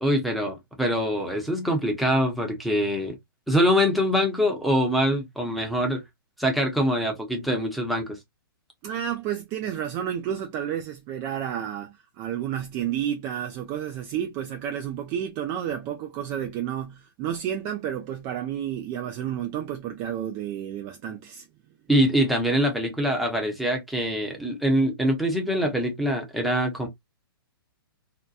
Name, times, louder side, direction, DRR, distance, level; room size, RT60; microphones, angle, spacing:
voice 1, 0.0-3.1 3.5-6.0 6.4-8.2 21.9-26.9, equal, ahead, 0.8 m, -24 dB
voice 2, 8.8-21.5, right 10 dB, 30° right, 0.4 m, -31 dB
2.7 x 2.1 x 2.4 m
hypercardioid pair, 135°, 12 cm